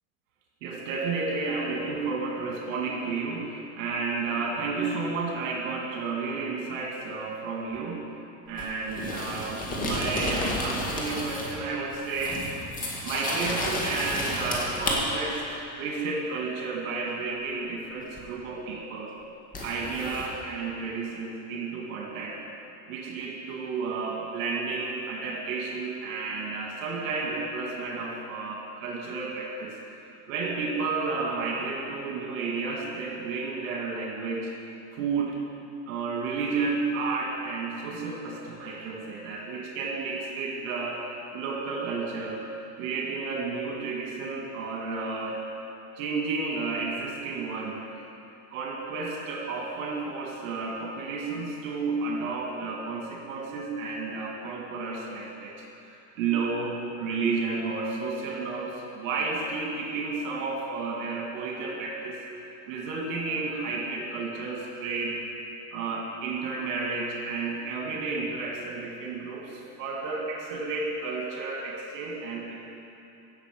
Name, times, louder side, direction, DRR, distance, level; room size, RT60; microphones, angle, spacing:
voice 1, 0.6-8.1 8.5-12.4 13.0-19.1 19.6-22.4 22.9-29.8 30.3-34.5 34.9-35.4 35.9-41.0 41.3-42.5 42.8-45.5 46.0-47.8 48.5-55.5 55.8-62.2 62.7-65.2 65.7-72.5, right 4 dB, 75° right, -2 dB, 2.0 m, -32 dB
sound 1, 8.6-11.6 11.9-15.0 18.2-18.3 19.5-20.3, left 1 dB, 20° left, 1.9 m, -32 dB
16.0 x 6.5 x 5.2 m, 2.9 s
supercardioid pair, 130°, 39 cm